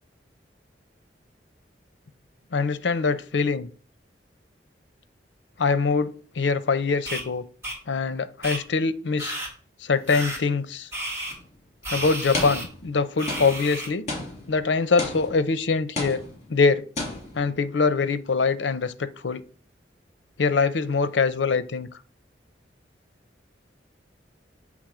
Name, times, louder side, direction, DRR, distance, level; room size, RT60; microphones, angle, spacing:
voice 1, 2.5-3.7 5.6-7.4 7.9-9.4 9.8-10.9 11.9-14.1 14.5-16.2 16.5-16.9 17.4-19.4 20.4-21.9, left 4 dB, 80° left, 0.6 m, -23 dB
sound 1, 7.1-7.2 7.6-7.8 8.4-8.6 9.2-9.5 10.1-10.4 10.9-11.3 11.8-12.7 13.2-13.9, right 1 dB, 15° right, 3.5 m, -32 dB
sound 2, 11.3-11.5 12.3-13.0 13.3-15.6 16.0-16.7 17.0-17.5, left 2 dB, 40° left, 2.8 m, -33 dB
8.0 x 3.6 x 4.9 m
head